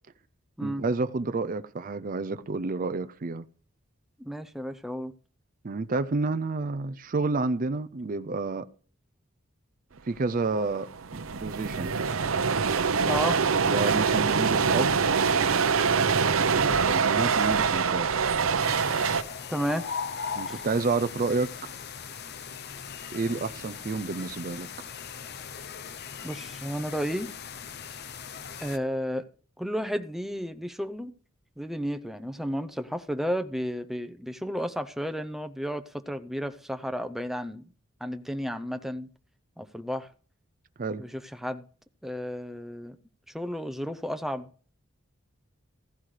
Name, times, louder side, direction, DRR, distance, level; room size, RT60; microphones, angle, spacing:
voice 1, 0.6-3.5 5.6-8.7 10.1-11.9 13.7-15.1 16.5-18.1 20.4-21.5 23.1-24.7 40.8-41.0, right 3 dB, 40° right, 0.5 m, -29 dB
voice 2, 4.2-5.1 13.0-13.4 19.5-19.9 20.5-20.6 26.2-27.3 28.6-29.3 29.6-31.1 31.6-37.7 38.0-39.1 39.6-40.1 41.0-41.6 42.0-43.0 43.3-44.5, equal, ahead, 0.7 m, -32 dB
sound 1, 10.5-10.6 10.7-19.2, right 5 dB, 80° right, 0.8 m, -24 dB
sound 2, 18.6-28.8, left 6 dB, 50° left, 0.7 m, -39 dB
15.5 x 15.0 x 3.3 m
head